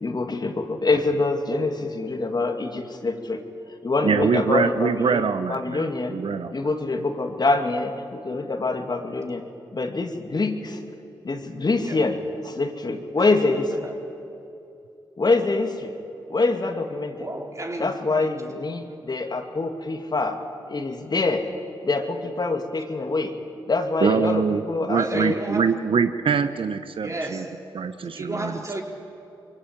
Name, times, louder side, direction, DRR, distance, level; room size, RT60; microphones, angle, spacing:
voice 1, 0.0-3.4 3.8-5.2 5.5-6.2 6.5-9.4 9.7-10.8 11.2-12.2 12.4-13.9 15.2-16.0 16.3-17.3 17.8-20.4 20.7-21.5 21.8-23.4 23.7-25.3, left 3 dB, 45° left, 6 dB, 2.4 m, -25 dB
voice 2, 4.0-6.6 24.0-27.4 27.7-28.6, right 6 dB, 70° right, 11 dB, 0.9 m, -24 dB
voice 3, 17.2-17.9 18.2-18.3 24.2-24.4 24.9-25.7 27.0-27.5 28.1-28.8, right 1 dB, 30° right, 1 dB, 4.3 m, -32 dB
22.0 x 17.5 x 9.0 m, 2.8 s
supercardioid pair, 45°, 10 cm